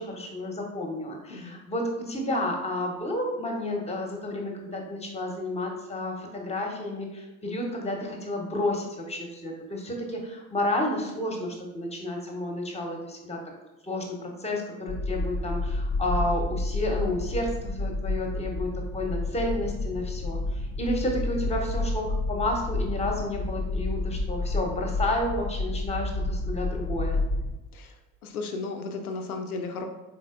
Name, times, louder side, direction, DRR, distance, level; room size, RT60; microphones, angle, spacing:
voice 1, 0.0-13.4 13.8-27.2, left 1 dB, 15° left, 1 dB, 1.0 m, -31 dB
sound 1, 14.9-27.5, left 2 dB, 35° left, 0.7 m, -30 dB
voice 2, 28.2-29.9, left 3 dB, 85° left, 4 dB, 0.5 m, -34 dB
4.1 x 3.9 x 2.5 m, 1.1 s
figure-of-eight pair, 55°, 43 cm